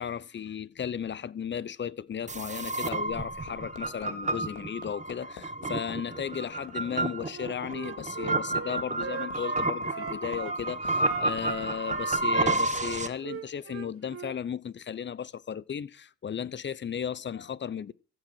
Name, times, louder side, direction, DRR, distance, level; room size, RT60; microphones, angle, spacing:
voice 1, 0.0-17.9, left 8 dB, 40° left, 0.8 m, -35 dB
Hammer, 2.1-12.0 13.3-13.4, left 9 dB, 85° left, 2.4 m, -47 dB
sound 1, 2.3-13.1, right 2 dB, 25° right, 1.5 m, -31 dB
Wind instrument woodwind instrument, 7.3-10.6 11.0-14.4, right 8 dB, 45° right, 1.4 m, -39 dB
14.5 x 7.7 x 6.2 m
cardioid pair, 90°, 30 cm